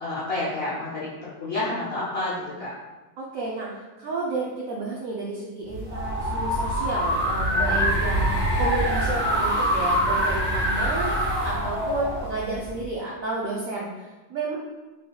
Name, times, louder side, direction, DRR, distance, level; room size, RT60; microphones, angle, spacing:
voice 1, 0.0-2.7 7.5-7.9, left 2 dB, 75° left, -7 dB, 0.5 m, -30 dB
voice 2, 3.2-3.7 4.0-8.3 8.6-13.9 14.3-14.6, right 2 dB, 80° right, -4 dB, 0.7 m, -31 dB
sound 1, 5.7-12.9, equal, 20° left, 0.7 m, -25 dB
3.5 x 3.4 x 2.2 m, 1.2 s
omnidirectional pair, 1.9 m